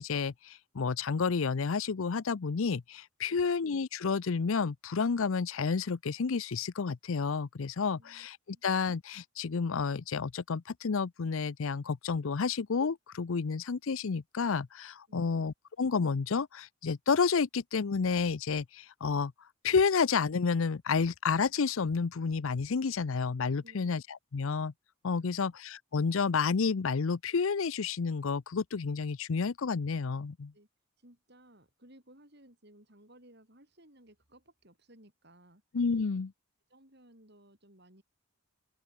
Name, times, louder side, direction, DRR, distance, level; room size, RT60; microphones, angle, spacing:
voice 1, 0.0-8.4 8.6-19.3 19.6-24.7 25.0-30.5 35.7-36.3, left 5 dB, 70° left, 0.5 m, -30 dB
voice 2, 7.9-8.6 15.1-15.4 23.6-23.9 25.2-25.5 30.5-30.7 31.0-35.6 36.7-38.0, right 1 dB, 50° right, 5.9 m, -59 dB
open air
head